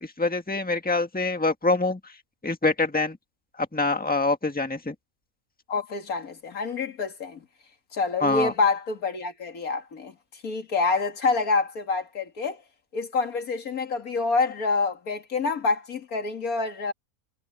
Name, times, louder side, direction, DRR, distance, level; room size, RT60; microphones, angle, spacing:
voice 1, 0.0-2.0 2.4-3.2 3.6-4.9 8.2-8.5, left 3 dB, 5° left, 1.5 m, -25 dB
voice 2, 5.7-7.4 7.9-12.6 12.9-16.9, left 4 dB, 90° left, 2.5 m, -27 dB
omnidirectional pair, 1.5 m